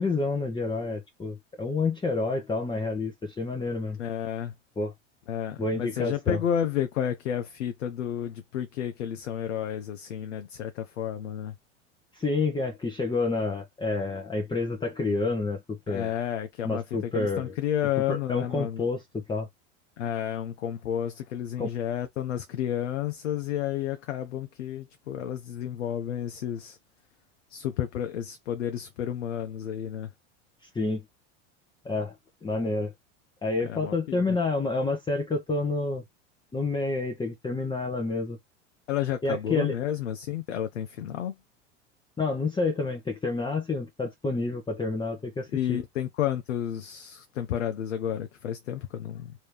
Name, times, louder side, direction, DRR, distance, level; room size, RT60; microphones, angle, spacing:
voice 1, 0.0-4.0 4.8-4.9 5.6-6.4 12.1-16.1 16.6-17.5 18.1-19.5 21.6-21.7 30.7-31.0 31.8-32.1 32.4-32.9 33.4-36.0 36.5-38.4 39.2-39.7 42.2-45.8, left 3 dB, 15° left, 0.8 m, -29 dB
voice 2, 4.0-4.5 5.3-11.5 15.9-18.9 20.0-26.8 27.5-30.1 33.6-34.4 38.9-41.4 45.5-49.3, left 10 dB, 85° left, 0.7 m, -31 dB
3.1 x 2.8 x 3.3 m
hypercardioid pair, 90°, 36 cm